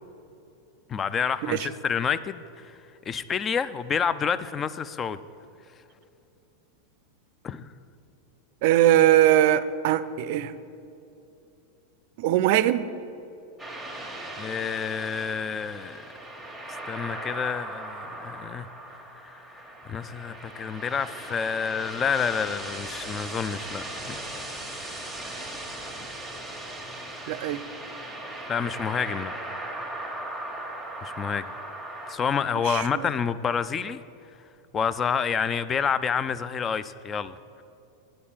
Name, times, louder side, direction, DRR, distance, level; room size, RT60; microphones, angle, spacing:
voice 1, 0.9-2.7 3.1-5.2 7.4-7.7 14.4-16.0 16.7-18.7 19.2-19.4 19.9-24.6 28.5-29.3 31.0-31.4 32.1-34.0 34.7-37.4, left 6 dB, 25° left, 15 dB, 0.3 m, -28 dB
voice 2, 8.6-10.6 12.2-12.9 27.3-27.6 32.6-33.1, right 12 dB, 60° right, 14 dB, 0.4 m, -21 dB
sound 1, 13.6-32.2, right 1 dB, ahead, 1.4 m, -38 dB
8.4 x 5.2 x 7.2 m, 2.8 s
supercardioid pair, 125°, 0 cm